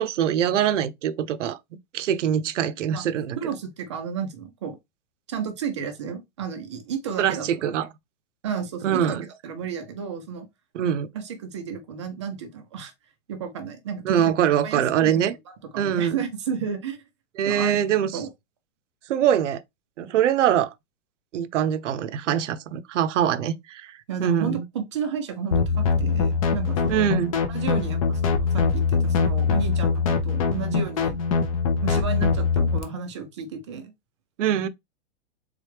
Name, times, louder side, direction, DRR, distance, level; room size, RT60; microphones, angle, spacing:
voice 1, 0.0-1.6 1.9-3.4 7.2-7.9 8.8-9.3 10.7-11.1 14.0-15.3 15.8-16.2 17.4-18.1 19.1-19.6 20.0-20.7 21.3-24.6 26.9-27.3 34.4-34.7, right 9 dB, 80° right, 0.7 m, -23 dB
voice 2, 3.4-4.8 5.3-7.9 8.4-9.1 9.4-10.5 11.1-12.9 13.3-14.3 14.6-17.0 17.5-17.8 18.1-18.3 24.1-27.1 27.5-31.2 31.8-33.9, right 6 dB, 25° right, 0.4 m, -32 dB
sound 1, 25.5-32.8, left 5 dB, 30° left, 0.5 m, -23 dB
3.7 x 3.3 x 3.2 m
supercardioid pair, 170°, 37 cm